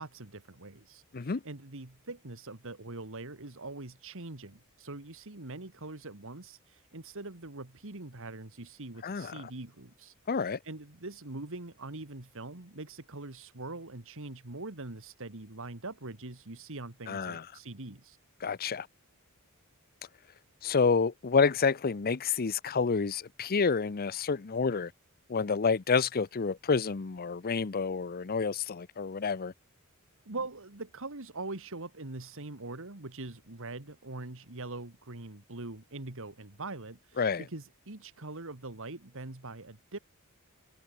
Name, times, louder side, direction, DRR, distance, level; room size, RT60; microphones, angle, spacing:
voice 1, 0.0-18.2 30.3-40.0, right 2 dB, 60° right, 2.1 m, -43 dB
voice 2, 10.3-10.6 17.1-17.4 18.4-18.9 20.6-24.9 25.3-29.5 37.2-37.4, left 5 dB, 40° left, 0.6 m, -29 dB
head